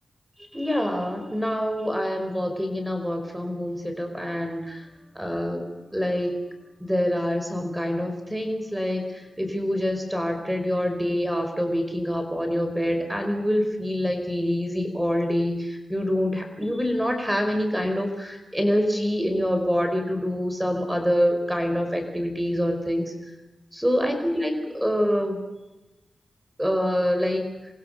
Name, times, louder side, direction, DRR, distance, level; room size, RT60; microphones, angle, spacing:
voice 1, 0.5-4.9 5.1-6.4 6.8-23.1 23.7-25.4 26.6-27.4, equal, 5° right, 5 dB, 5.1 m, -26 dB
28.5 x 23.5 x 6.8 m, 1.0 s
cardioid pair, 65°, 0 cm